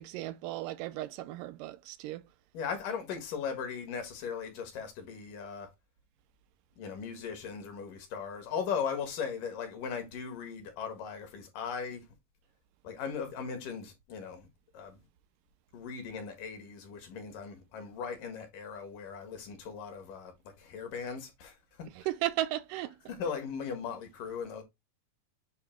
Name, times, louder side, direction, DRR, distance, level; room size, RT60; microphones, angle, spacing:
voice 1, 0.0-2.2 22.0-23.0, right 15 dB, 85° right, 2.2 m, -35 dB
voice 2, 2.5-5.7 6.8-12.1 12.8-14.5 14.7-15.0 15.7-21.9 23.1-24.6, left 6 dB, 75° left, 3.1 m, -38 dB
8.3 x 2.9 x 4.3 m
omnidirectional pair, 3.8 m